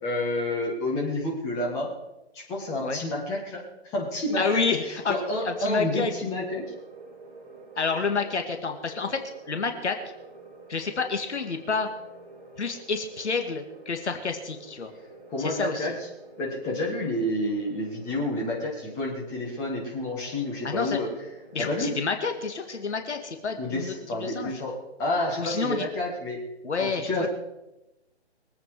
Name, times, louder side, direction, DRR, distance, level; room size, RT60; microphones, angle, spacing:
voice 1, 0.0-1.9 2.3-4.6 5.1-6.6 15.3-15.9 16.4-21.1 21.6-21.9 23.6-24.7 25.0-26.4 26.8-27.3, left 1 dB, 10° left, -1 dB, 1.5 m, -29 dB
sound 1, 4.3-23.4, right 3 dB, 40° right, 4.0 m, -48 dB
voice 2, 4.4-5.2 5.4-6.1 7.8-9.2 9.5-10.0 10.7-11.9 12.6-14.9 15.4-15.9 20.6-21.0 21.5-24.6 25.4-25.9 26.6-27.3, left 4 dB, 75° left, 5 dB, 2.1 m, -29 dB
23.5 x 8.6 x 4.8 m, 0.95 s
hypercardioid pair, 170°, 35 cm